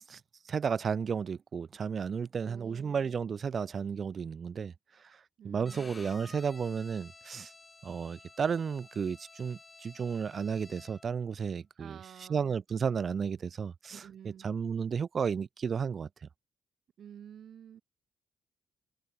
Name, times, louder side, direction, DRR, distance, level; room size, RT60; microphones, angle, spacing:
voice 1, 0.5-4.7 5.4-7.5 7.8-16.1, right 6 dB, 45° right, 0.6 m, -33 dB
voice 2, 2.4-3.1 5.4-6.1 11.8-12.5 13.9-14.5 17.0-17.8, right 9 dB, 65° right, 1.1 m, -50 dB
Bowed string instrument, 5.6-11.2, left 3 dB, 25° left, 8.0 m, -53 dB
cardioid pair, 90°, 0 cm